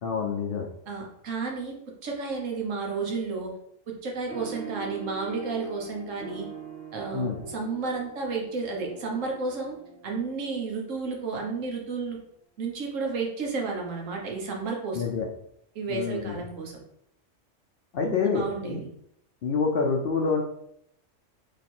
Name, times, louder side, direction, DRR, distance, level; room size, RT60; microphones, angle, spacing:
voice 1, 0.0-0.7 7.1-7.5 14.9-15.3 15.9-16.3 17.9-18.8 19.4-20.4, left 5 dB, 60° left, 1 dB, 0.7 m, -27 dB
voice 2, 0.9-1.8 2.0-3.5 3.9-6.5 6.9-9.7 10.0-12.2 12.6-15.0 15.7-16.8 18.0-18.9, right 4 dB, 80° right, 0 dB, 1.3 m, -32 dB
sound 1, 4.3-11.2, right 3 dB, 25° right, 1.4 m, -42 dB
3.2 x 3.2 x 4.3 m, 0.73 s
omnidirectional pair, 1.3 m